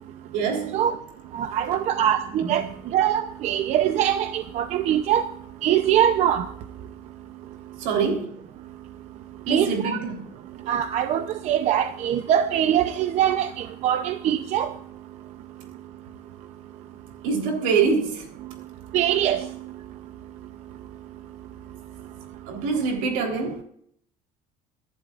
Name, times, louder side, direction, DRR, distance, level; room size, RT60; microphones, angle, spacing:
voice 1, 0.3-0.9 1.6-1.8 2.4-2.7 7.8-8.4 9.5-10.3 17.2-18.3 22.5-23.6, right 5 dB, 85° right, 3.8 m, -25 dB
voice 2, 1.3-2.6 2.9-5.3 5.6-6.5 9.5-10.0 10.7-14.7 18.9-19.5, right 10 dB, 50° right, 0.7 m, -23 dB
24.5 x 11.5 x 2.5 m
cardioid pair, 150°, 15 cm